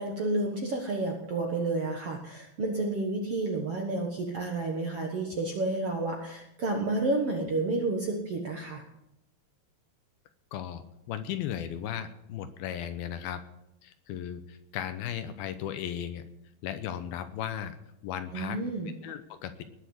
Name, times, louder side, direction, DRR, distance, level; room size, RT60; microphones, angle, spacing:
voice 1, 0.0-8.8 18.3-18.9, right 2 dB, 55° right, 2 dB, 1.7 m, -30 dB
voice 2, 10.5-13.4 13.8-16.2 16.6-17.8 18.0-18.6 19.0-19.6, left 9 dB, 75° left, 10 dB, 2.6 m, -36 dB
19.5 x 6.8 x 8.0 m, 0.83 s
omnidirectional pair, 4.6 m